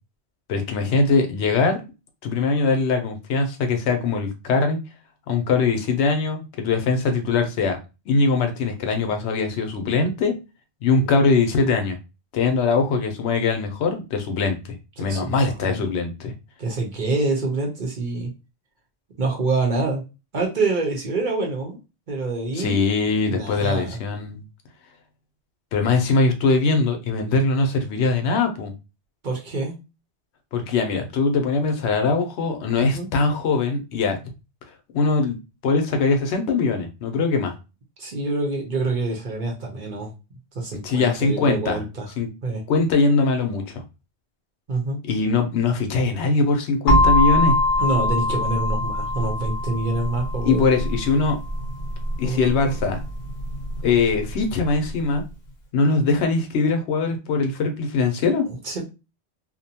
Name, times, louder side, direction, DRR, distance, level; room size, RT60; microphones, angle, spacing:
voice 1, 0.5-1.8 2.2-4.8 5.3-7.8 8.1-10.3 10.8-12.0 12.3-16.3 22.6-24.4 25.7-28.7 30.5-34.2 34.9-35.4 35.6-37.5 40.8-41.8 42.2-42.3 42.7-43.8 45.1-47.6 50.5-51.4 52.2-53.0 53.8-55.2 55.7-58.5, left 4 dB, 75° left, 0.9 m, -21 dB
voice 2, 15.0-15.9 16.6-18.3 19.2-20.0 20.3-21.8 22.1-22.8 23.3-24.0 29.2-29.7 32.8-33.1 38.0-40.1 40.5-42.1 42.4-42.6 44.7-45.0 47.8-50.6 52.2-52.8 58.4-58.8, right 3 dB, 50° right, 0.8 m, -26 dB
sound 1, 46.9-54.7, left 1 dB, 45° left, 0.7 m, -23 dB
2.6 x 2.1 x 2.7 m
omnidirectional pair, 1.2 m